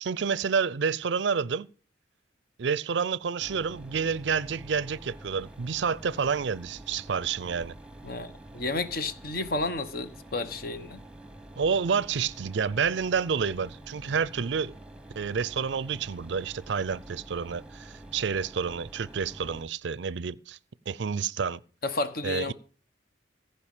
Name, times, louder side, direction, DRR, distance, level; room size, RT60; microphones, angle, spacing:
voice 1, 0.0-1.7 2.6-7.7 11.6-14.8 15.2-20.6 20.9-21.6 22.2-22.5, right 6 dB, 70° right, 0.5 m, -29 dB
Mechanisms, 3.4-19.6, right 1 dB, 5° right, 1.0 m, -47 dB
voice 2, 8.0-11.0 21.8-22.5, left 2 dB, 50° left, 1.0 m, -32 dB
15.0 x 5.4 x 8.8 m
head